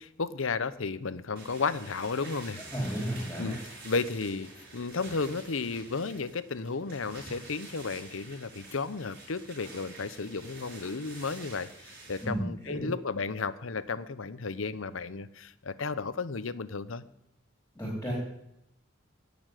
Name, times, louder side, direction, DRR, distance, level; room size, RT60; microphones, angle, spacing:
voice 1, 0.0-2.6 3.4-3.6 3.8-17.0, left 4 dB, 75° left, 15 dB, 0.8 m, -33 dB
sound 1, 1.4-12.3, right 2 dB, 50° right, 6.8 m, -48 dB
voice 2, 2.5-3.6 12.2-12.9 17.7-18.1, equal, 10° left, -3 dB, 4.2 m, -33 dB
16.5 x 7.0 x 9.1 m, 0.82 s
head